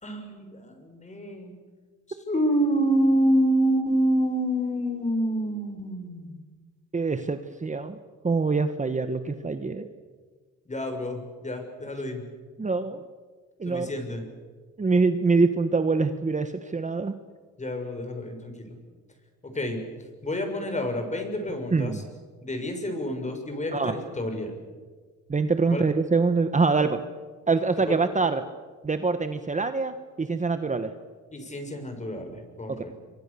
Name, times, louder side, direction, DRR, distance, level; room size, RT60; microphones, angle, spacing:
voice 1, 0.0-1.5 2.3-6.4 10.7-12.2 13.6-14.2 17.6-18.8 19.4-19.8 20.2-22.0 22.4-24.5 25.7-25.8 27.9-28.0 31.3-33.0, equal, 25° left, 5 dB, 6.5 m, -28 dB
voice 2, 6.9-7.9 8.2-9.9 12.6-13.0 13.6-13.9 14.8-17.1 21.7-22.0 23.7-23.9 25.3-27.0 27.5-28.4 28.8-30.9 32.7-32.8, right 4 dB, 25° right, 9 dB, 1.4 m, -24 dB
27.0 x 24.0 x 7.1 m, 1.5 s
cardioid pair, 90°, 30 cm